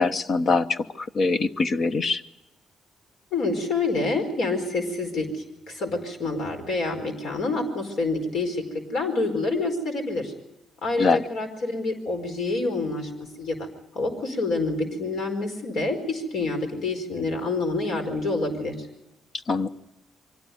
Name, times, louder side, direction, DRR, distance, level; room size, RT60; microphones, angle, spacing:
voice 1, 0.0-2.2 11.0-11.2 19.5-19.7, left 4 dB, 50° left, 11 dB, 1.1 m, -23 dB
voice 2, 3.3-5.3 5.7-8.6 8.9-10.3 10.8-13.7 13.9-18.9, left 3 dB, 70° left, 5 dB, 4.8 m, -27 dB
24.0 x 17.0 x 9.5 m, 0.95 s
cardioid pair, 90°, 0 cm